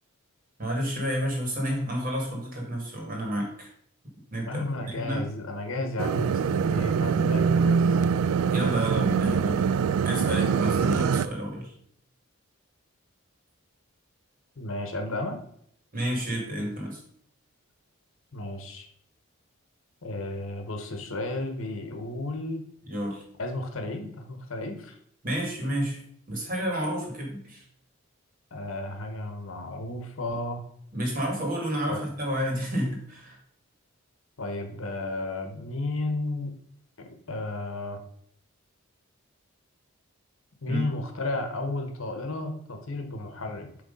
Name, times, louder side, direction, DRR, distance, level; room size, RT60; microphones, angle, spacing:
voice 1, 0.6-3.7 4.3-4.6 4.9-5.2 8.5-9.7 10.0-11.7 15.9-17.0 22.9-23.2 25.2-26.0 26.3-27.6 30.9-33.4 40.7-40.9, equal, 40° right, -1 dB, 2.0 m, -30 dB
voice 2, 4.5-8.0 14.6-15.4 18.3-18.9 20.0-22.6 23.4-25.0 28.5-30.6 31.9-32.0 34.4-36.5 37.0-38.0 40.6-43.7, left 2 dB, 65° left, 5 dB, 1.0 m, -33 dB
sound 1, 6.0-11.3, right 6 dB, 75° right, 0.3 m, -24 dB
7.9 x 3.2 x 5.2 m, 0.67 s
head